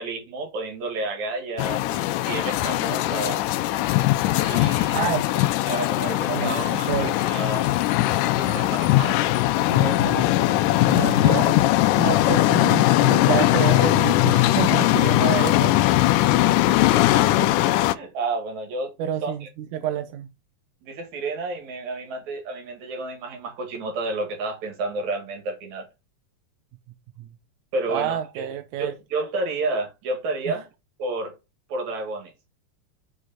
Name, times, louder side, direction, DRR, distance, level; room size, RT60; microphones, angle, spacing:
voice 1, 0.0-3.4 4.4-5.0 5.7-7.7 8.4-9.3 16.7-18.9 19.2-19.5 20.8-25.9 27.7-28.5 28.8-30.7 31.0-31.3 31.7-32.3, right 3 dB, 65° right, 3.4 m, -31 dB
sound 1, 1.6-17.9, left 16 dB, 90° left, 2.1 m, -20 dB
voice 2, 4.9-5.2 6.3-7.1 9.7-10.3 10.9-15.8 19.0-20.3 27.2-27.3 27.9-28.9 30.5-30.6, right 10 dB, 85° right, 2.2 m, -29 dB
6.4 x 5.1 x 5.7 m
omnidirectional pair, 3.6 m